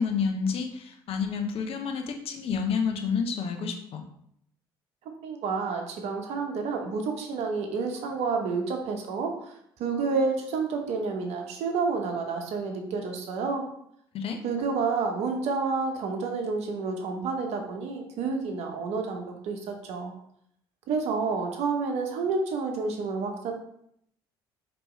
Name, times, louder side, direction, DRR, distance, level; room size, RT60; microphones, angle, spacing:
voice 1, 0.0-4.0 14.1-14.4, left 6 dB, 50° left, 5 dB, 0.7 m, -29 dB
voice 2, 5.2-9.3 9.8-13.7 14.4-20.1 20.9-23.5, right 4 dB, 60° right, 3 dB, 0.8 m, -29 dB
4.5 x 3.0 x 3.1 m, 0.72 s
hypercardioid pair, 60°, 12 cm